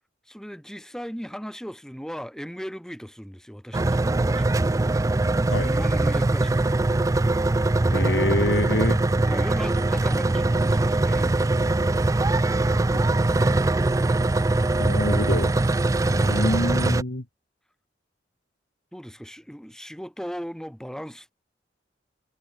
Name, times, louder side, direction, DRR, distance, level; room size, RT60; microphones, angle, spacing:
voice 1, 0.2-4.6 5.6-7.0 8.6-11.4 18.9-21.3, equal, 5° left, 4.9 m, -38 dB
sound 1, 3.7-17.0, right 2 dB, 15° right, 0.3 m, -22 dB
voice 2, 7.9-9.0 12.9-13.3 14.8-15.5 16.1-17.3, left 2 dB, 70° left, 1.8 m, -27 dB
head